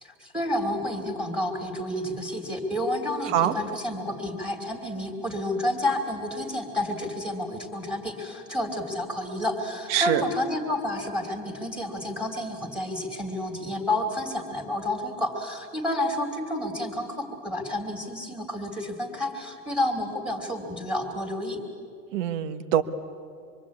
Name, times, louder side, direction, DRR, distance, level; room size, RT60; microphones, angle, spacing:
voice 1, 0.0-21.6, left 1 dB, ahead, 3 dB, 2.8 m, -30 dB
voice 2, 9.9-10.2 22.1-22.8, right 11 dB, 50° right, 10 dB, 1.6 m, -24 dB
26.0 x 23.0 x 8.5 m, 2.3 s
supercardioid pair, 150°, 45 cm